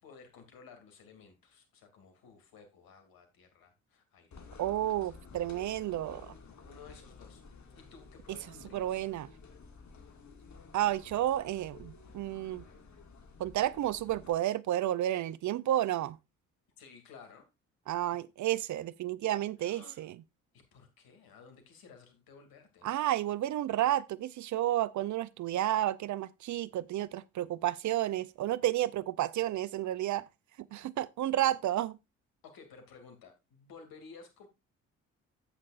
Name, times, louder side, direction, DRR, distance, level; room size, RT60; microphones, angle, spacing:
voice 1, 0.0-4.5 4.9-5.1 6.7-7.4 7.7-9.1 16.8-17.5 19.6-20.1 20.5-22.9 32.4-34.5, left 5 dB, 65° left, 2.5 m, -55 dB
sound 1, 4.3-14.4, left 4 dB, 45° left, 2.1 m, -53 dB
voice 2, 4.6-6.3 8.7-9.3 10.7-12.6 13.4-16.2 17.9-20.1 22.8-30.3 30.7-32.0, right 13 dB, 50° right, 0.6 m, -31 dB
11.5 x 8.5 x 2.5 m
hypercardioid pair, 45°, 38 cm